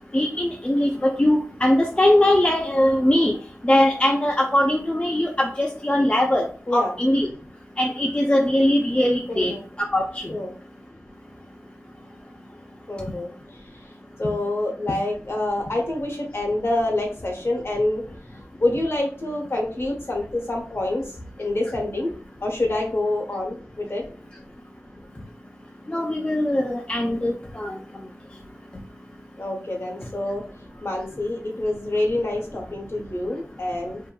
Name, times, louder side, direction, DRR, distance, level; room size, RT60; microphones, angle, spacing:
voice 1, 0.1-3.3 3.6-6.5 6.7-7.3 7.8-9.5 9.9-10.0 14.9-15.0 25.9-27.7, left 1 dB, 20° left, 0 dB, 0.4 m, -20 dB
voice 2, 9.3-9.6 10.3-10.5 12.9-13.8 14.2-18.0 18.6-21.0 21.4-22.1 22.4-24.0 29.4-30.4 30.8-34.0, left 2 dB, 50° left, 0 dB, 0.9 m, -26 dB
2.6 x 2.6 x 2.2 m, 0.41 s
wide cardioid pair, 45°, 5 cm